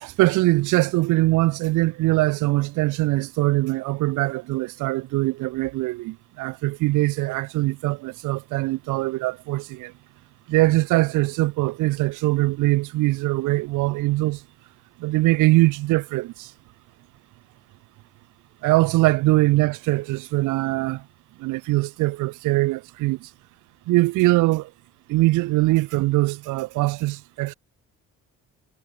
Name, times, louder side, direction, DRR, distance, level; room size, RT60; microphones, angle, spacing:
voice 1, 0.0-9.9 10.5-14.4 15.0-16.5 18.6-21.0 21.4-23.3 23.9-24.7 25.1-27.5, right 20 dB, 85° right, 0.5 m, -22 dB
cardioid pair, 90°, 30 cm